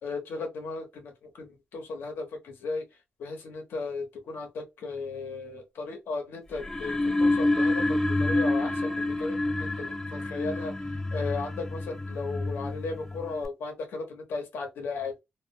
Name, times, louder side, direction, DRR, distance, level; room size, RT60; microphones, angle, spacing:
voice 1, 0.0-2.8 3.2-15.1, left 4 dB, 90° left, 0.9 m, -36 dB
sound 1, 6.5-13.4, left 2 dB, 10° left, 0.4 m, -28 dB
2.4 x 2.1 x 2.6 m
cardioid pair, 100°, 4 cm